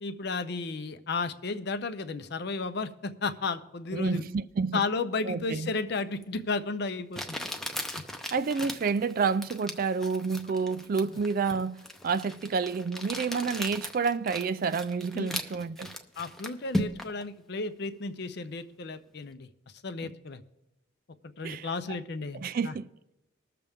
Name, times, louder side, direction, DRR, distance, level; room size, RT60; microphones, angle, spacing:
voice 1, 0.0-4.2 4.7-7.4 15.1-15.3 16.2-19.5 19.8-20.4 21.2-22.7, left 3 dB, 55° left, 0.6 m, -33 dB
voice 2, 3.9-4.9 5.2-5.7 8.3-16.0 20.0-20.1 21.4-21.7 22.3-22.9, right 5 dB, 45° right, 0.3 m, -29 dB
Crumpling crinkling, 6.2-6.3 7.1-17.2, left 1 dB, ahead, 0.6 m, -37 dB
20.0 x 6.8 x 3.5 m
head